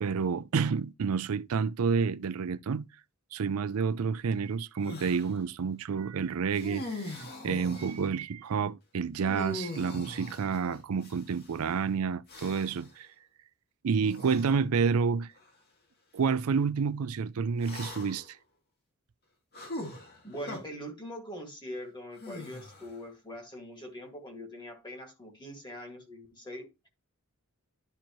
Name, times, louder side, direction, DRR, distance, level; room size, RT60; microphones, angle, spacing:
voice 1, 0.0-2.9 3.3-7.1 7.4-13.1 13.8-15.3 16.1-18.4, right 5 dB, 85° right, 0.4 m, -29 dB
sound 1, 4.8-5.3 6.5-8.1 9.2-11.5 12.3-12.9 14.0-14.5 15.4-15.5 17.6-18.3 19.5-20.6 22.2-23.0, left 2 dB, 45° left, 2.1 m, -41 dB
voice 2, 20.2-26.9, equal, 20° left, 2.1 m, -42 dB
11.5 x 4.4 x 3.0 m
head